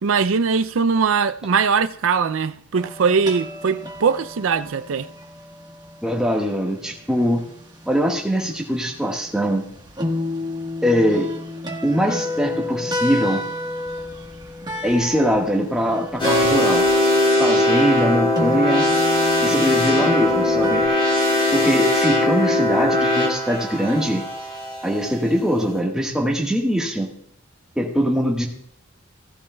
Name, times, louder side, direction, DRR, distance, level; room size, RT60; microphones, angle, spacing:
voice 1, 0.0-5.1, right 5 dB, 70° right, 0.4 m, -21 dB
sound 1, 2.7-20.9, equal, 20° right, 1.3 m, -31 dB
voice 2, 6.0-7.4 7.8-9.6 10.8-11.3 11.8-13.4 14.8-16.8 17.4-18.8 19.4-20.8 21.5-24.2 24.8-27.1 27.7-28.5, equal, 5° right, 1.5 m, -22 dB
sound 2, 16.2-25.2, left 2 dB, 25° left, 3.3 m, -20 dB
16.5 x 11.5 x 2.3 m
head